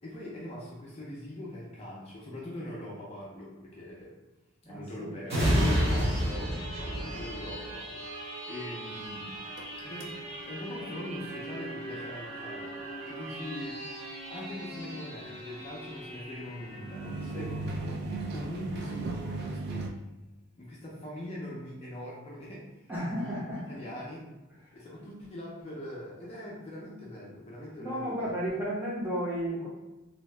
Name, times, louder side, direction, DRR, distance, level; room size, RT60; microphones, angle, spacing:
voice 1, 0.0-4.2 4.6-9.5 9.8-12.8 13.1-19.9 20.6-23.4 23.7-24.2 24.7-28.4, left 1 dB, 30° left, -5 dB, 0.5 m, -42 dB
voice 2, 4.6-5.2 17.3-17.5 22.9-23.8 25.0-25.1 27.8-29.7, equal, 10° right, -7 dB, 0.7 m, -33 dB
sound 1, 5.3-18.6 19.0-19.2, equal, 30° right, 1.0 m, -34 dB
sound 2, 8.9-10.4 16.5-19.9, right 3 dB, 50° right, 0.3 m, -37 dB
2.7 x 2.1 x 3.2 m, 1.1 s
head